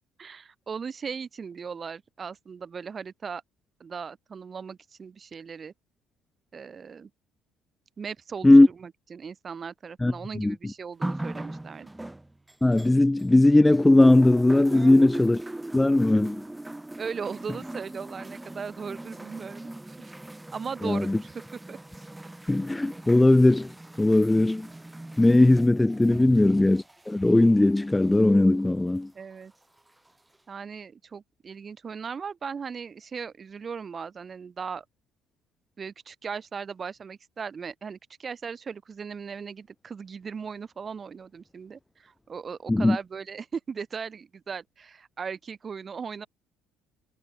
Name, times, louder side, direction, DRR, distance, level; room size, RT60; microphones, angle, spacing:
voice 1, 0.2-3.4 3.8-5.7 6.5-7.1 8.0-11.9 14.7-15.1 17.0-20.1 20.5-21.3 21.7-21.8 26.2-26.3 29.1-29.5 30.5-34.8 35.8-46.3, right 6 dB, 35° right, 2.7 m, -38 dB
voice 2, 10.0-10.6 12.6-15.4 15.7-16.4 20.8-21.2 22.5-23.7 24.0-24.7 25.2-29.1 42.7-43.0, left 2 dB, 10° left, 0.5 m, -19 dB
sound 1, 11.0-13.4 13.7-28.4 29.3-29.4, right 1 dB, 10° right, 5.3 m, -40 dB
supercardioid pair, 80°, 0 cm